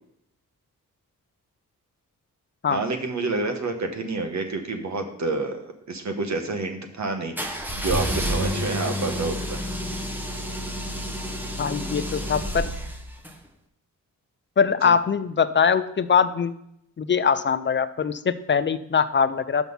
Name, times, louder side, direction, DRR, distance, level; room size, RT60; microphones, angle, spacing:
voice 1, 2.7-9.6, right 3 dB, 55° right, 5 dB, 1.2 m, -29 dB
sound 1, 7.4-13.3, equal, 5° right, 0.9 m, -29 dB
voice 2, 11.6-12.7 14.6-16.5 17.0-19.7, left 6 dB, 35° left, 14 dB, 0.4 m, -22 dB
6.0 x 5.8 x 5.4 m, 0.76 s
cardioid pair, 90°, 33 cm